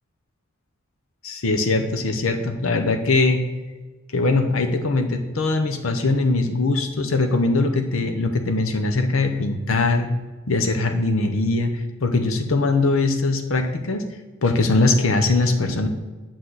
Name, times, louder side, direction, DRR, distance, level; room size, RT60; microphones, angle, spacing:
voice 1, 1.2-3.4 4.1-10.1 10.5-14.0 14.4-15.9, left 3 dB, 85° left, 5 dB, 0.8 m, -21 dB
8.4 x 6.2 x 4.0 m, 1.2 s
head